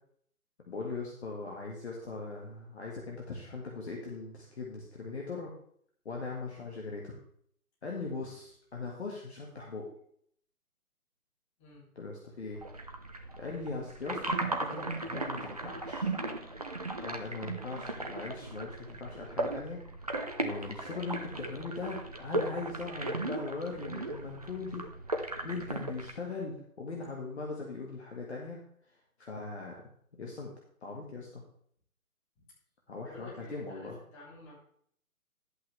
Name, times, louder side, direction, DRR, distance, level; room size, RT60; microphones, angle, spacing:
voice 1, 0.7-5.5 6.1-7.2 7.8-9.9 12.0-12.6 13.4-16.1 17.0-19.8 20.0-24.8 25.4-28.6 29.2-29.7 30.2-30.5 30.8-31.4 32.9-34.0, left 3 dB, 45° left, -1 dB, 1.9 m, -40 dB
sound 1, 12.5-26.1, right 2 dB, 25° right, 0.6 m, -37 dB
voice 2, 33.1-34.5, left 2 dB, 20° left, -5 dB, 3.7 m, -50 dB
11.5 x 8.3 x 3.4 m, 0.64 s
figure-of-eight pair, 145°, 44 cm